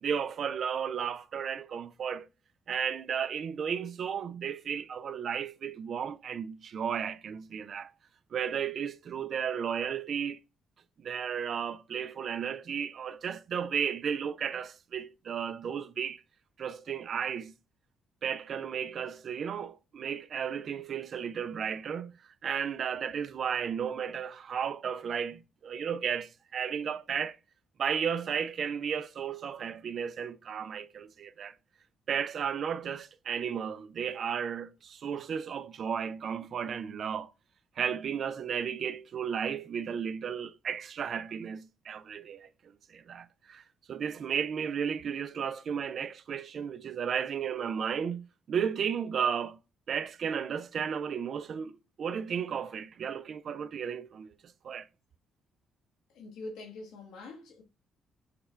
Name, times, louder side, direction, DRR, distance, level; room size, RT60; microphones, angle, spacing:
voice 1, 0.0-2.3 2.7-7.9 8.3-10.4 11.0-16.2 16.6-17.5 18.2-22.1 22.4-27.4 27.8-31.6 32.1-37.3 37.8-43.6 43.9-49.6 49.9-54.3 54.6-54.9, right 7 dB, 55° right, 0.4 m, -34 dB
voice 2, 56.1-57.6, left 2 dB, 90° left, 1.2 m, -44 dB
6.5 x 2.3 x 3.2 m
cardioid pair, 90°, 0 cm